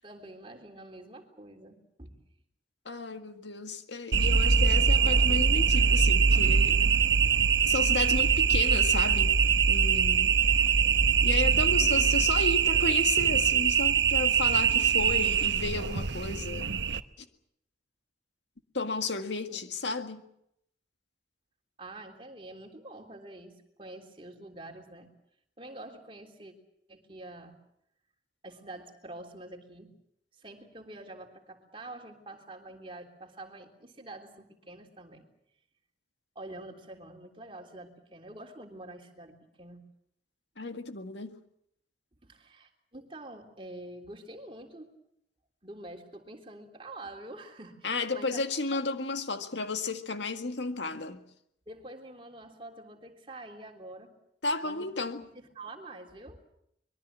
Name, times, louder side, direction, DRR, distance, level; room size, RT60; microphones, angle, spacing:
voice 1, 0.0-2.2 10.7-11.2 19.5-19.6 21.8-25.1 25.6-26.5 26.9-27.5 28.4-30.0 30.3-35.3 36.4-39.8 42.2-44.9 45.6-48.4 48.7-48.8 51.7-54.1 54.6-56.4, right 2 dB, 30° right, 3.4 m, -46 dB
voice 2, 2.9-6.8 7.7-9.4 9.7-10.3 11.2-16.7 18.7-20.2 40.6-41.4 47.8-51.2 54.4-55.2, left 3 dB, 85° left, 1.9 m, -33 dB
sound 1, 4.1-17.0, right 6 dB, 85° right, 1.0 m, -23 dB
24.5 x 22.5 x 7.4 m
head